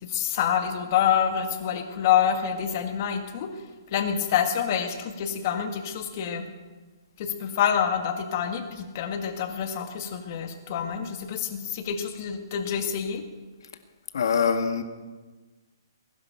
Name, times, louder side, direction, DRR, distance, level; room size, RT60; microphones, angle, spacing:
voice 1, 0.0-3.5 3.9-6.5 7.2-13.2, left 8 dB, 35° left, 6 dB, 1.7 m, -27 dB
voice 2, 14.1-14.8, left 6 dB, 65° left, 7 dB, 1.8 m, -23 dB
20.5 x 11.0 x 5.7 m, 1.3 s
hypercardioid pair, 165°, 2 cm